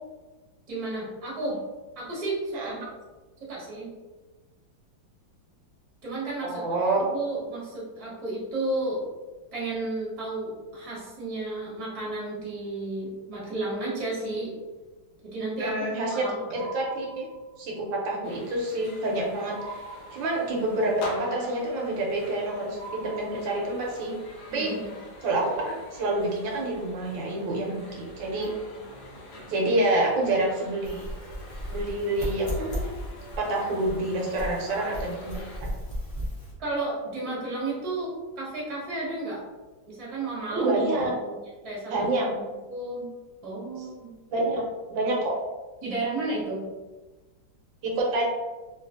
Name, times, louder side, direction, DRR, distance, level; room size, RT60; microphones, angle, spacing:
voice 1, 0.7-1.6 1.9-2.8 3.4-3.9 6.0-6.6 7.0-9.0 9.5-14.5 15.2-16.6 24.5-25.0 27.6-27.9 36.6-39.4 39.9-40.8 41.1-41.3 41.6-42.1 42.3-42.4 42.7-43.1 43.4-44.1 45.8-46.6, right 2 dB, 25° right, -6 dB, 0.8 m, -32 dB
voice 2, 6.4-7.0 15.6-16.3 16.5-17.3 17.6-19.8 20.1-24.2 24.5-24.7 25.2-28.5 29.5-31.1 31.7-32.9 33.4-35.7 40.5-41.1 41.9-42.3 44.3-44.6 44.9-45.3 47.8-48.2, right 2 dB, 80° right, -2 dB, 1.3 m, -27 dB
sound 1, 16.5-17.7 19.5-20.7 22.7-24.0, right 4 dB, 25° left, 1.0 m, -43 dB
sound 2, 18.2-35.6, left 1 dB, 65° left, 1.1 m, -45 dB
sound 3, 30.8-36.5, equal, 50° left, 0.4 m, -35 dB
3.1 x 2.7 x 2.4 m, 1.2 s
omnidirectional pair, 2.1 m